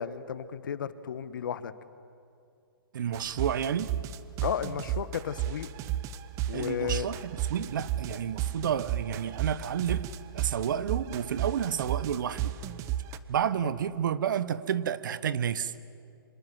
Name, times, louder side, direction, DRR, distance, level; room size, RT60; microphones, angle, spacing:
voice 1, 0.0-1.7 4.4-5.7 6.5-7.1, left 8 dB, 60° left, 14 dB, 1.4 m, -33 dB
voice 2, 2.9-3.9 6.5-10.1 10.3-12.5 13.3-15.7, right 8 dB, 55° right, 15 dB, 1.3 m, -30 dB
sound 1, 3.1-13.2, right 12 dB, 25° right, 1.0 m, -33 dB
29.5 x 26.0 x 7.6 m, 2.4 s
hypercardioid pair, 135°, 12 cm